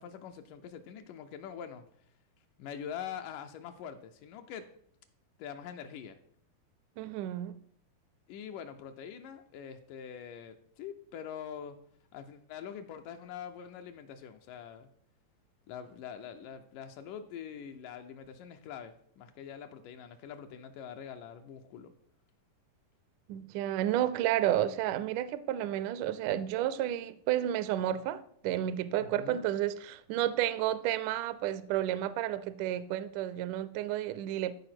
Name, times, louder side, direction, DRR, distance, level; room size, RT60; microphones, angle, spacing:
voice 1, 0.0-1.8 2.6-4.7 5.4-6.2 8.3-11.8 12.1-14.9 15.7-21.9 29.1-29.4, left 8 dB, 80° left, 2.2 m, -44 dB
voice 2, 7.0-7.6 23.3-34.5, right 12 dB, 80° right, 1.9 m, -31 dB
13.5 x 4.7 x 5.9 m
omnidirectional pair, 3.9 m